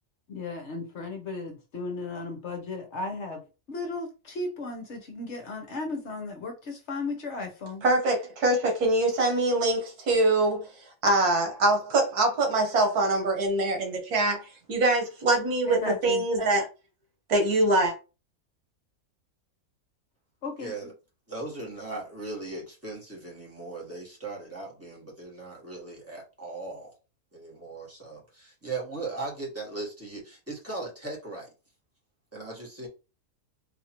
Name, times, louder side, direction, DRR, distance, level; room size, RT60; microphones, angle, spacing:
voice 1, 0.3-3.4 3.7-7.8 15.6-16.2 20.4-20.9, left 3 dB, 55° left, 1.1 m, -35 dB
voice 2, 7.8-10.7 11.0-14.4 14.7-16.7 17.3-17.9, right 2 dB, 90° right, 1.7 m, -24 dB
voice 3, 20.6-20.9 21.3-26.9 27.3-31.5 32.3-32.9, right 3 dB, 10° right, 1.3 m, -38 dB
4.2 x 2.6 x 2.9 m
omnidirectional pair, 1.6 m